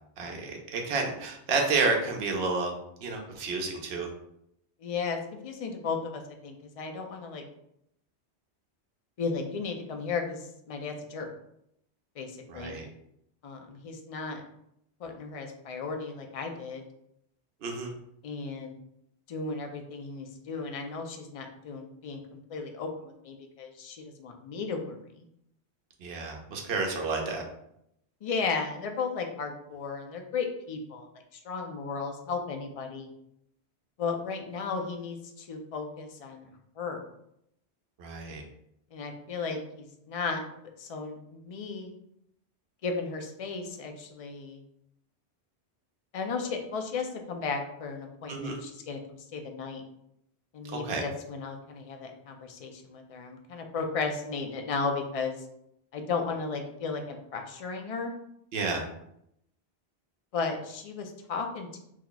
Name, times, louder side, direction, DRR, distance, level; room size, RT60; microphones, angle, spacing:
voice 1, 0.2-2.7 3.0-4.1 12.5-12.8 17.6-17.9 26.0-27.4 38.0-38.4 48.3-48.6 50.6-51.0 58.5-58.8, right 3 dB, 70° right, 1 dB, 0.9 m, -30 dB
voice 2, 4.8-7.4 9.2-11.3 12.2-12.8 13.4-14.4 15.0-16.8 18.2-18.7 19.3-25.2 28.2-33.1 34.0-36.5 36.8-37.0 38.9-40.4 40.8-41.9 42.8-44.6 46.1-49.8 50.5-55.4 55.9-58.1 60.3-61.8, left 4 dB, 65° left, 3 dB, 0.3 m, -35 dB
2.9 x 2.2 x 3.8 m, 0.76 s
omnidirectional pair, 1.1 m